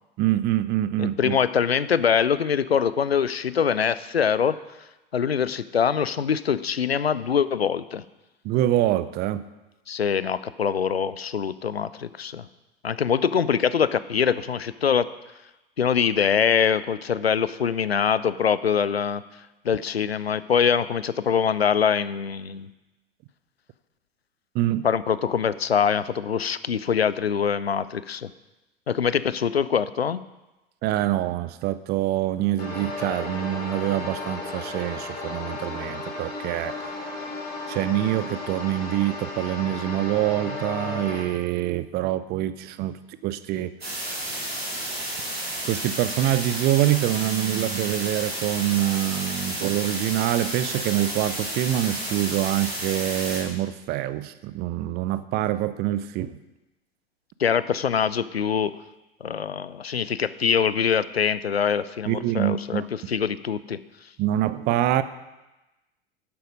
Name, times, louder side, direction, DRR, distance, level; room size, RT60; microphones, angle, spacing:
voice 1, 0.2-1.4 8.4-9.4 24.5-24.9 30.8-36.7 37.7-43.0 43.2-43.7 45.6-56.4 62.1-62.9 64.2-65.0, right 14 dB, 35° right, 14 dB, 0.5 m, -25 dB
voice 2, 1.0-4.6 5.1-8.0 9.9-12.4 12.8-15.1 15.8-19.2 19.6-22.7 24.8-28.3 28.9-30.2 57.4-58.8 59.2-63.8, left 7 dB, 85° left, 16 dB, 0.5 m, -24 dB
sound 1, 32.6-41.2, left 3 dB, 30° left, 3.1 m, -34 dB
sound 2, 43.8-53.4, right 1 dB, 85° right, 3.2 m, -31 dB
10.5 x 7.9 x 5.1 m, 1.0 s
figure-of-eight pair, 85°, 30 cm